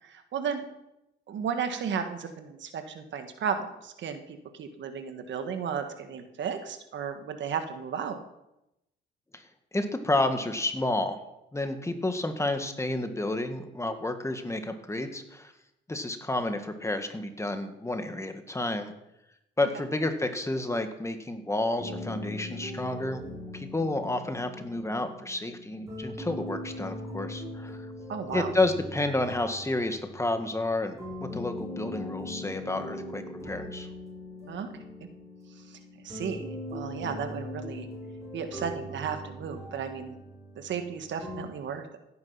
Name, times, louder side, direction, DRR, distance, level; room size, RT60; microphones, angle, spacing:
voice 1, 0.0-0.6 1.3-8.2 19.7-19.8 28.1-28.5 34.5-34.7 35.7-35.8 36.0-37.9 38.3-40.1 40.5-42.0, right 7 dB, 65° right, 8 dB, 1.5 m, -34 dB
voice 2, 9.7-11.2 11.5-15.5 15.9-18.9 19.6-23.2 23.5-27.8 28.3-33.9, left 2 dB, 15° left, 7 dB, 1.7 m, -30 dB
sound 1, 21.8-41.5, left 1 dB, 15° right, 6.3 m, -40 dB
16.0 x 9.5 x 5.7 m, 0.89 s
cardioid pair, 90°, 20 cm